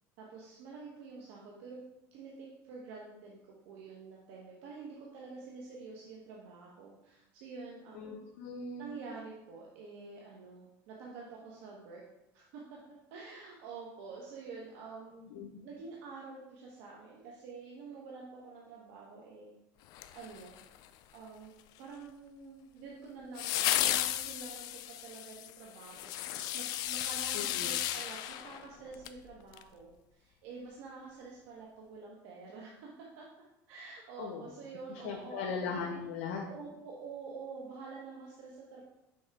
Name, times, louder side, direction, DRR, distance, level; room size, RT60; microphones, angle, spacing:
voice 1, 0.2-1.8 2.1-3.4 3.6-8.3 8.8-12.0 12.3-12.6 13.1-15.2 15.6-19.5 20.1-20.6 21.1-21.5 21.8-32.9 33.2-33.3 33.7-36.1 36.5-38.8, right 4 dB, 75° right, -3 dB, 1.1 m, -48 dB
voice 2, 7.9-8.9 15.3-15.6 27.3-27.7 34.2-34.5 35.0-36.4, left 5 dB, 90° left, 1 dB, 0.8 m, -39 dB
sound 1, 19.9-20.9 23.4-29.2 29.5-29.6, left 13 dB, 60° left, 0.4 m, -34 dB
6.3 x 3.5 x 4.6 m, 0.91 s
supercardioid pair, 125°, 7 cm